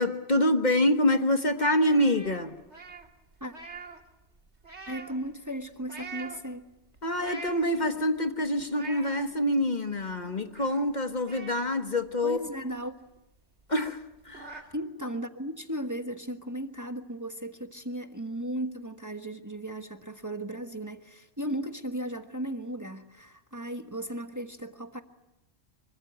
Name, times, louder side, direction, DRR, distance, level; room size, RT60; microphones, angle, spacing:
voice 1, 0.0-2.6 7.0-12.4 13.7-14.6, left 1 dB, 40° left, 1.4 m, -26 dB
sound 1, 1.5-4.0 4.3-5.3 5.8-6.4 7.0-7.9 8.4-9.2 9.7-9.8 10.0-10.9 11.2-12.8 13.1-13.2 13.6-13.7 14.0-14.6, right 4 dB, 75° right, 2.8 m, -44 dB
voice 2, 4.9-6.6 12.2-13.0 14.7-25.0, right 1 dB, 15° right, 1.3 m, -36 dB
25.5 x 24.0 x 9.3 m
omnidirectional pair, 1.2 m